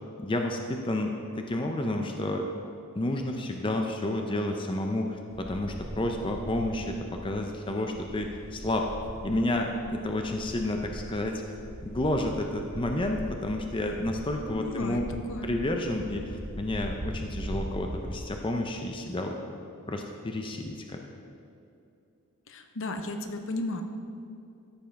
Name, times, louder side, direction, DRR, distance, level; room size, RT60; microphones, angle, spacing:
voice 1, 0.2-2.5 2.9-7.0 7.2-8.9 9.2-11.4 11.8-19.3 19.9-21.0, left 1 dB, 25° left, 3 dB, 0.5 m, -30 dB
sound 1, 5.3-18.2, equal, 45° right, 1.4 m, -41 dB
voice 2, 14.5-15.0 15.3-15.5 22.5-23.8, left 2 dB, 60° left, 5 dB, 0.8 m, -34 dB
13.0 x 5.4 x 5.8 m, 2.7 s
head